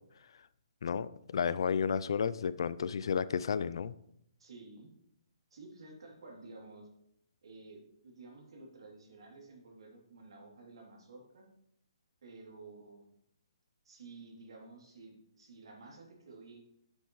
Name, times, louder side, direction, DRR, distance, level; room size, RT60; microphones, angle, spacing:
voice 1, 0.8-3.9, left 6 dB, 65° left, 0.4 m, -32 dB
voice 2, 4.4-4.9 5.5-6.9 7.4-11.5 12.2-13.0 13.8-16.6, right 3 dB, 70° right, 3.0 m, -52 dB
9.9 x 7.3 x 3.2 m
hypercardioid pair, 155°, 3 cm